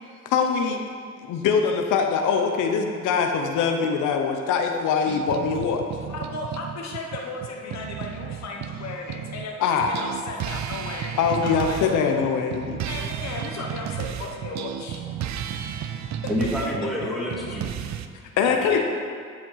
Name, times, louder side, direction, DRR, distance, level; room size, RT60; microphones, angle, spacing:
voice 1, 0.3-0.8 1.2-5.8 9.6-9.9 11.2-12.8 18.4-18.8, left 6 dB, 85° left, 4 dB, 0.8 m, -23 dB
sound 1, 5.1-9.5 9.8-18.1, right 9 dB, 65° right, 0.6 m, -33 dB
voice 2, 6.1-11.8 12.8-15.4 15.8-16.1 17.5-17.6 18.2-18.8, left 3 dB, 60° left, 1 dB, 1.1 m, -36 dB
voice 3, 16.3-17.7 18.4-18.8, equal, ahead, -6 dB, 2.5 m, -28 dB
10.5 x 5.1 x 5.6 m, 2.2 s
cardioid pair, 90°, 30 cm